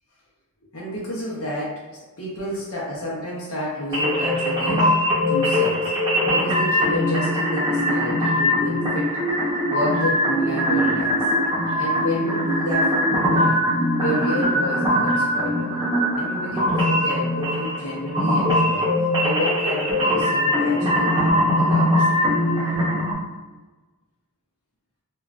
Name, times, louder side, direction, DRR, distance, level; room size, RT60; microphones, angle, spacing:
voice 1, 0.7-1.9 2.2-5.9 6.3-9.2 9.7-11.3 11.8-13.7 14.0-15.7 16.1-18.9 19.2-22.4, left 1 dB, 80° left, -7 dB, 0.7 m, -30 dB
sound 1, 3.9-23.1, equal, 20° right, 0.6 m, -21 dB
3.0 x 2.3 x 2.4 m, 1.2 s
head